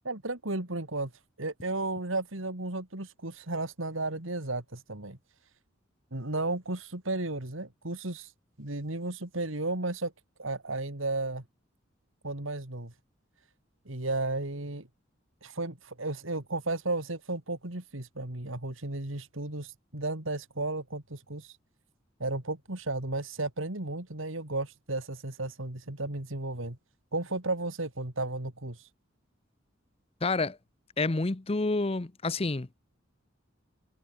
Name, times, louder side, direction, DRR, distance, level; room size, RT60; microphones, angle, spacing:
voice 1, 0.0-1.1 1.4-5.2 6.1-8.3 8.6-10.1 10.4-11.4 12.2-12.9 13.9-14.9 15.4-21.6 22.2-26.8 27.1-28.9, right 2 dB, 85° right, 3.4 m, -34 dB
voice 2, 30.2-30.6 31.0-32.7, left 3 dB, 30° left, 0.7 m, -28 dB
head